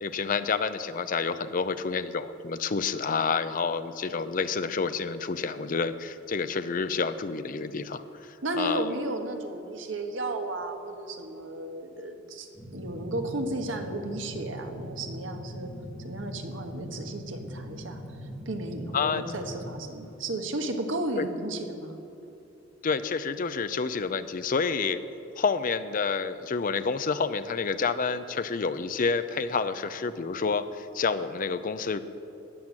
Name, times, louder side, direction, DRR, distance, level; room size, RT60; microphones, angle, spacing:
voice 1, 0.0-8.9 18.9-19.2 21.2-21.3 22.8-25.0 25.4-32.0, left 5 dB, 45° left, 11 dB, 0.5 m, -29 dB
voice 2, 8.4-15.7 16.0-18.0 18.4-22.0, right 2 dB, 75° right, 5 dB, 1.4 m, -34 dB
sound 1, 12.5-19.7, equal, 15° left, 1.9 m, -41 dB
13.0 x 9.1 x 7.6 m, 2.9 s
head